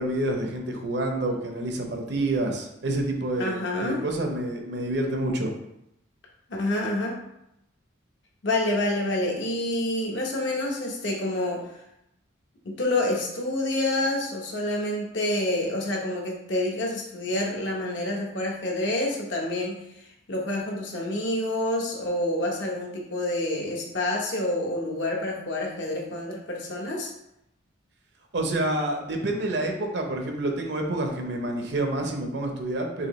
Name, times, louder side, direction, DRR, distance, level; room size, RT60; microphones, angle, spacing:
voice 1, 0.0-3.6 3.8-5.5 28.3-33.1, right 1 dB, 60° right, 3 dB, 0.7 m, -28 dB
voice 2, 3.4-4.0 6.5-7.2 8.4-11.6 12.6-19.8 20.3-27.1, left 1 dB, 65° left, 0 dB, 0.9 m, -28 dB
5.6 x 2.8 x 3.0 m, 0.82 s
head